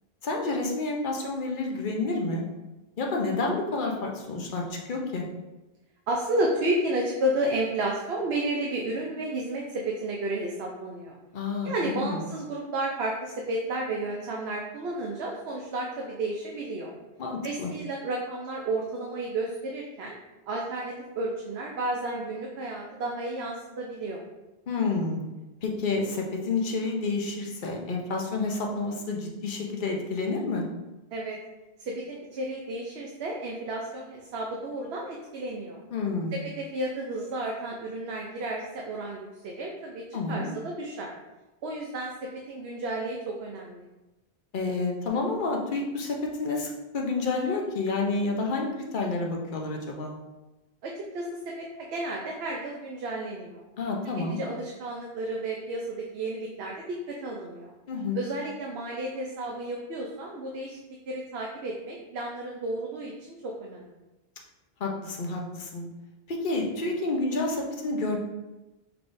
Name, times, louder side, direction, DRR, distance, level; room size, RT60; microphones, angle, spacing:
voice 1, 0.2-2.4 3.0-4.6 4.9-5.2 11.3-12.2 17.2-17.7 24.7-25.2 25.6-30.6 35.9-36.3 40.1-40.5 44.5-50.1 53.8-54.4 57.9-58.2 64.8-65.9 66.3-68.2, left 3 dB, 55° left, 0 dB, 0.9 m, -29 dB
voice 2, 6.1-11.2 11.6-16.9 17.4-20.1 20.5-24.2 31.1-31.4 31.8-35.8 36.3-41.1 41.6-42.1 42.5-43.9 50.8-53.6 54.3-57.7 58.1-60.8 61.0-63.8, right 1 dB, 75° right, -1 dB, 0.9 m, -32 dB
5.8 x 3.5 x 2.6 m, 1.1 s
omnidirectional pair, 1.1 m